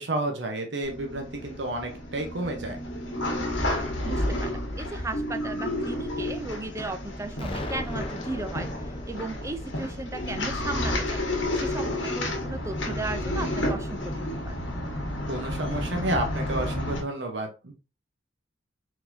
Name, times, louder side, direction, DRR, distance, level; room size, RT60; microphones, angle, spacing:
voice 1, 0.0-2.8 15.3-17.7, right 1 dB, 65° right, 2 dB, 0.9 m, -31 dB
sound 1, 0.8-17.0, left 1 dB, 75° left, 1.5 m, -31 dB
voice 2, 4.0-8.7 9.1-11.2 11.5-14.6, right 2 dB, 15° right, 9 dB, 0.4 m, -36 dB
Explosion, 7.4-12.2, left 1 dB, 30° left, 0.7 m, -39 dB
4.6 x 4.0 x 2.7 m, 0.31 s
head